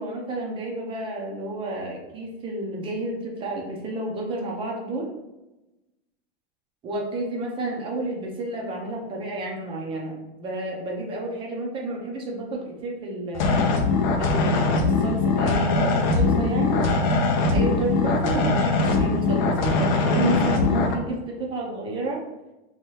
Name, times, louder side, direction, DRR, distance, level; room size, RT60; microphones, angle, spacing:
voice 1, 0.0-5.1 6.8-13.5 14.2-16.9 17.5-22.2, right 2 dB, 15° right, -1 dB, 0.4 m, -30 dB
sound 1, 13.3-20.9, left 3 dB, 45° left, 0.5 m, -21 dB
2.8 x 2.3 x 3.0 m, 1.0 s
supercardioid pair, 150°, 33 cm